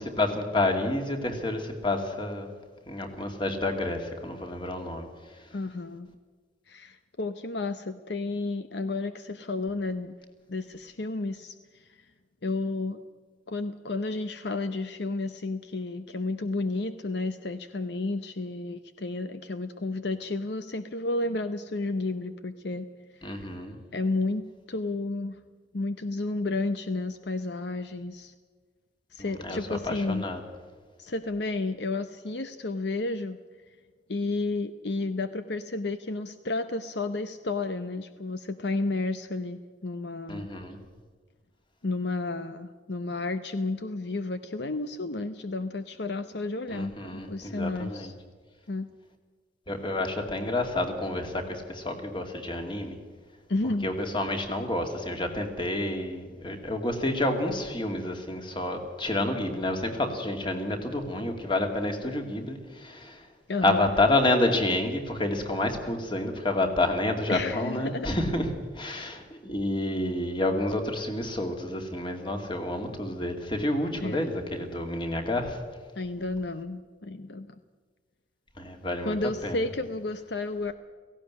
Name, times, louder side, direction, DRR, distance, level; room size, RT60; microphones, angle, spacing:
voice 1, 0.0-2.5 2.9-5.1 23.2-23.7 29.4-29.6 29.8-30.4 40.3-40.8 46.7-48.1 49.7-53.0 53.8-63.2 63.6-75.6 78.6-79.2 79.4-79.6, left 1 dB, 25° left, 4 dB, 2.4 m, -29 dB
voice 2, 5.5-6.1 6.7-10.2 10.5-12.0 12.4-13.0 13.5-22.9 23.2-23.3 23.9-25.4 25.7-28.3 29.1-30.3 31.0-33.4 34.1-40.5 41.8-48.1 48.7-48.9 53.5-53.9 63.5-63.9 67.3-68.1 68.9-69.1 74.0-74.4 76.0-77.5 79.0-80.7, left 2 dB, 65° left, 10 dB, 0.8 m, -32 dB
17.5 x 16.0 x 9.6 m, 1.5 s
head